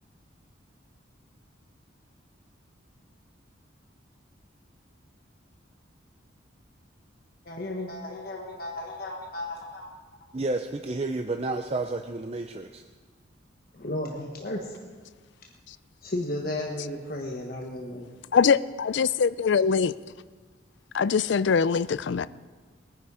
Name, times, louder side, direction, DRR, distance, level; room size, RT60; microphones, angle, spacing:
voice 1, 7.4-9.9 13.7-14.8 16.0-18.1, left 1 dB, 50° left, 0 dB, 1.3 m, -34 dB
voice 2, 10.3-12.8, right 2 dB, 30° right, 5 dB, 0.5 m, -31 dB
voice 3, 18.3-19.9 20.9-22.3, left 6 dB, 65° left, 17 dB, 0.4 m, -23 dB
20.5 x 9.9 x 4.9 m, 1.4 s
head